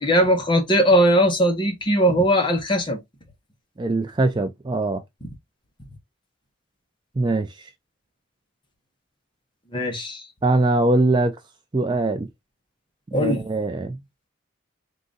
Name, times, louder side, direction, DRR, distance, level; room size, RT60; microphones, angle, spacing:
voice 1, 0.0-3.0 9.7-10.3 13.1-13.4, equal, 25° left, 0.9 m, -19 dB
voice 2, 3.8-5.0 7.2-7.7 10.4-11.4 11.7-12.3 13.1-14.0, right 2 dB, 20° right, 0.3 m, -22 dB
3.8 x 2.6 x 3.7 m
head